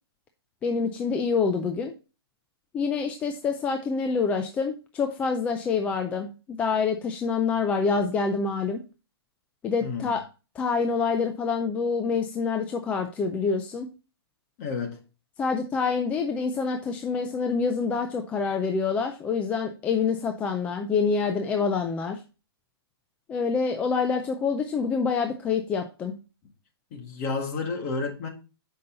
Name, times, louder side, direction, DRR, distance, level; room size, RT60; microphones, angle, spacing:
voice 1, 0.6-1.9 2.7-8.8 9.6-10.2 10.6-13.9 15.4-22.2 23.3-26.1, left 5 dB, 10° left, 0.3 m, -26 dB
voice 2, 9.8-10.2 14.6-15.0 26.9-28.3, left 4 dB, 35° left, 1.8 m, -31 dB
6.7 x 5.4 x 3.9 m
hypercardioid pair, 155°, 13 cm